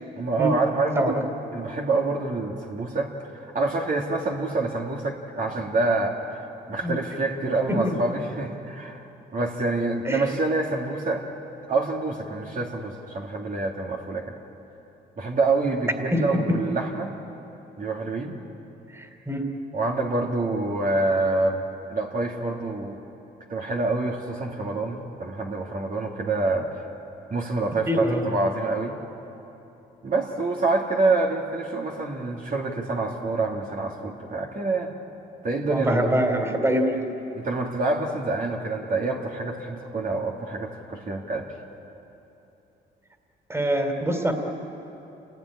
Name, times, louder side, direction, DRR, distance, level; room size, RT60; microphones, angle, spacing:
voice 1, 0.2-6.4 6.7-11.2 11.7-14.3 15.2-17.1 17.8-18.4 19.7-23.0 23.5-26.8 27.3-29.0 30.0-34.9 35.4-36.1 37.3-41.5, right 3 dB, 45° right, -1 dB, 2.6 m, -27 dB
voice 2, 18.9-19.5 27.9-28.2 35.7-37.0 43.5-44.3, right 1 dB, 15° right, 4 dB, 3.5 m, -24 dB
28.0 x 18.0 x 10.0 m, 3.0 s
cardioid pair, 90°, 20 cm